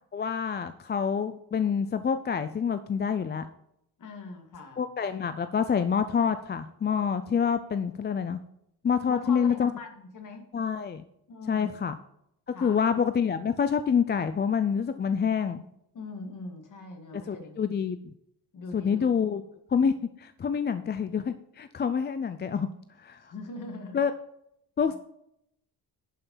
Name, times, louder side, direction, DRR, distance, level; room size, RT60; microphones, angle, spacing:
voice 1, 0.1-3.5 4.8-8.4 8.8-9.7 10.5-11.0 11.5-11.9 12.6-15.6 17.3-18.0 18.7-19.4 19.7-19.9 20.2-22.7 23.0-23.2 23.9-24.1 24.8-25.0, left 7 dB, 30° left, 11 dB, 0.4 m, -27 dB
voice 2, 4.0-4.8 9.1-10.4 11.3-11.8 12.5-12.8 15.9-17.7 18.5-19.1 23.2-24.0 24.9-25.0, left 3 dB, 55° left, 4 dB, 2.3 m, -41 dB
11.0 x 5.7 x 5.5 m, 0.75 s
wide cardioid pair, 170°, 38 cm